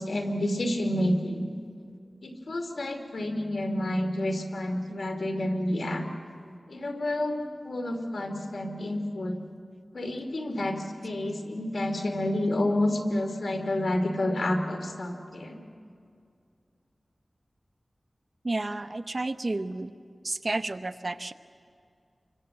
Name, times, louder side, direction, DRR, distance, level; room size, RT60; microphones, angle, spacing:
voice 1, 0.0-1.5 2.2-6.0 6.7-9.4 9.9-15.6, left 1 dB, 85° left, 4 dB, 2.6 m, -29 dB
voice 2, 18.4-19.9 20.2-21.3, right 2 dB, 45° right, 9 dB, 0.9 m, -31 dB
27.5 x 24.0 x 7.7 m, 2.3 s
wide cardioid pair, 70°, 0 cm